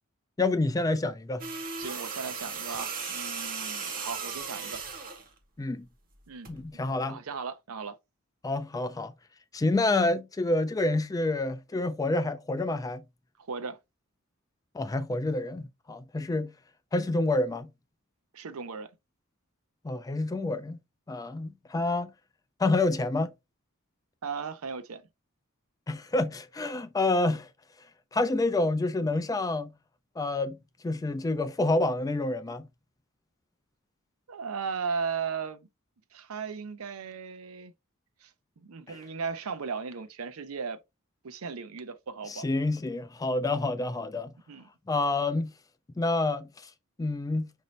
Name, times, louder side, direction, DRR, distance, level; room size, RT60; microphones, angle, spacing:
voice 1, 0.4-1.5 5.6-5.9 6.5-7.2 8.4-9.1 9.5-13.0 14.7-16.5 16.9-17.7 19.8-20.8 21.1-22.1 22.6-23.3 25.9-27.5 28.1-29.7 30.2-30.6 30.8-32.7 38.9-39.0 42.3-44.3 44.9-45.5 46.0-46.5 47.0-47.5, left 2 dB, 15° left, 0.3 m, -28 dB
sound 1, 1.4-5.3 6.4-6.6, right 5 dB, 40° right, 0.9 m, -36 dB
voice 2, 1.8-4.8 6.3-6.5 7.0-8.0 13.5-13.8 18.3-18.9 24.2-25.0 34.3-35.7 36.1-37.7 38.2-38.3 38.6-40.8 41.2-42.5 44.5-44.7, right 5 dB, 75° right, 0.6 m, -36 dB
5.0 x 2.7 x 3.1 m
head